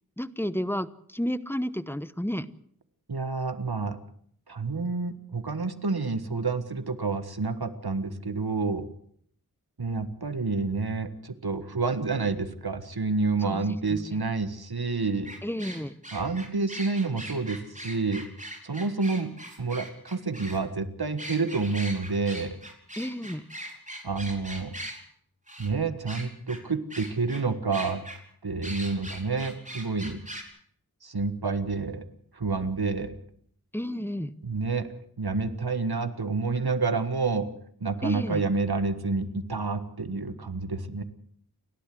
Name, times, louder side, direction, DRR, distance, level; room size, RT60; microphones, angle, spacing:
voice 1, 0.2-2.5 13.4-14.2 15.4-15.9 23.0-23.4 33.7-34.3 38.0-38.4, equal, 5° left, 14 dB, 1.1 m, -31 dB
voice 2, 3.1-4.0 4.5-8.9 9.8-15.3 16.1-18.2 18.6-19.3 19.6-22.6 24.0-24.7 25.6-28.0 28.4-30.2 31.0-32.1 32.3-33.1 34.4-34.9 35.2-37.5 37.8-41.0, right 4 dB, 80° right, 11 dB, 1.6 m, -29 dB
sound 1, 15.3-20.6 21.2-25.0 25.5-25.7 26.1-26.6 26.9-27.4 27.7-28.2 28.6-30.4, right 1 dB, 20° right, 4.6 m, -40 dB
29.0 x 12.0 x 7.8 m, 0.64 s
wide cardioid pair, 40°, 37 cm